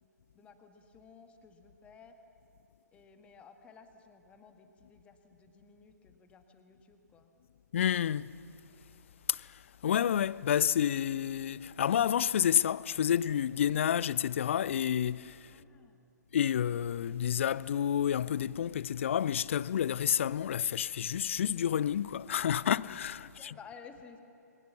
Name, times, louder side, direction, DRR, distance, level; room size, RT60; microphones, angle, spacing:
voice 1, 0.3-2.2 2.9-7.3 15.5-16.0 23.2-24.2, left 5 dB, 10° left, 1.7 m, -55 dB
voice 2, 7.7-8.3 9.3-9.5 9.8-15.5 16.3-23.5, left 9 dB, 40° left, 0.5 m, -29 dB
27.5 x 24.0 x 7.2 m
figure-of-eight pair, 130°, 10 cm